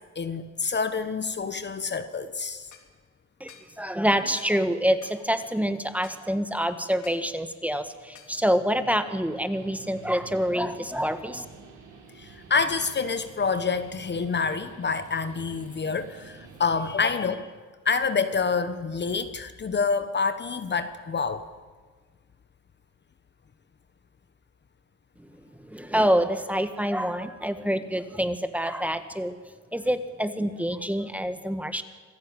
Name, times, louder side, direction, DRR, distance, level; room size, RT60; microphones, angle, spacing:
voice 1, 0.1-2.7 12.2-17.5 17.8-21.4, left 5 dB, 35° left, 10 dB, 1.2 m, -27 dB
sound 1, 2.7-2.9 3.5-3.7 4.3-4.6 5.0-5.2 6.0-6.2 7.0-7.2 8.1-8.4, left 7 dB, 65° left, 3.4 m, -49 dB
voice 2, 3.4-11.4 25.2-25.3 25.6-29.4 29.7-31.8, equal, 5° right, 9 dB, 1.5 m, -26 dB
Guitar, 8.7-17.3, right 4 dB, 80° right, 6.3 m, -49 dB
26.5 x 16.0 x 9.0 m, 1.5 s
cardioid pair, 100°, 32 cm